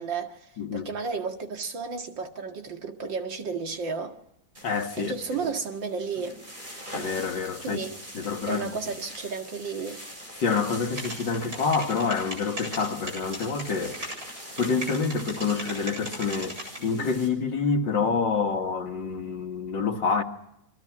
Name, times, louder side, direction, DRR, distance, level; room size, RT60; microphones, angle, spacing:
voice 1, 0.0-4.2 5.0-6.4 7.6-8.0 8.5-10.0, right 5 dB, 85° right, 2.7 m, -33 dB
voice 2, 0.6-0.9 4.6-5.1 6.9-7.8 8.1-8.8 10.4-14.0 14.6-16.6 16.8-20.2, left 5 dB, 80° left, 2.6 m, -27 dB
sound 1, 4.5-17.3, equal, 25° right, 6.5 m, -43 dB
sound 2, 10.9-16.8, right 1 dB, 55° right, 8.8 m, -36 dB
29.5 x 23.0 x 6.2 m
omnidirectional pair, 2.0 m